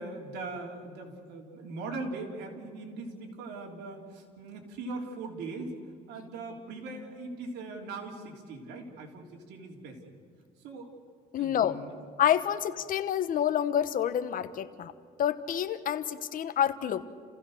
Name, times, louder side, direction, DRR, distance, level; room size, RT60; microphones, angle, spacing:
voice 1, 0.0-5.7 6.1-10.0 10.6-10.9 11.4-11.9, right 3 dB, 85° right, 1 dB, 3.7 m, -40 dB
voice 2, 11.3-11.8 12.2-14.9 15.2-17.0, left 10 dB, 55° left, 11 dB, 1.2 m, -28 dB
30.0 x 16.0 x 6.6 m, 2.3 s
cardioid pair, 110°, 17 cm